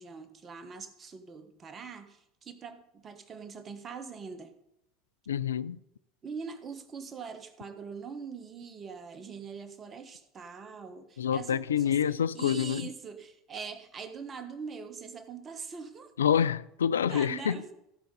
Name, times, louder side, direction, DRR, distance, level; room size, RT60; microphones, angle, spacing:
voice 1, 0.0-4.5 6.2-16.1 17.0-17.7, right 5 dB, 30° right, 1.3 m, -43 dB
voice 2, 5.3-5.8 11.2-12.9 16.2-17.6, left 8 dB, 85° left, 0.3 m, -27 dB
15.0 x 5.2 x 5.3 m
hypercardioid pair, 75°, 0 cm